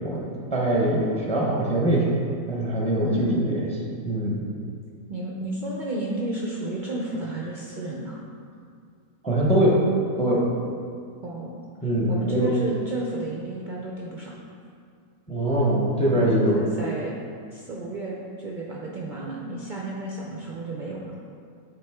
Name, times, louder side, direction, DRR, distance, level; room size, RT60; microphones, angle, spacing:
voice 1, 0.0-2.1 2.5-3.8 4.0-4.4 9.2-9.8 10.2-10.4 11.8-12.5 15.3-16.6, right 1 dB, 5° left, -4 dB, 0.6 m, -23 dB
voice 2, 3.0-3.6 5.1-8.2 11.2-11.7 12.1-14.3 16.1-17.2 17.5-21.1, right 1 dB, 60° right, -3 dB, 0.5 m, -31 dB
8.8 x 3.7 x 3.5 m, 2.3 s
omnidirectional pair, 1.5 m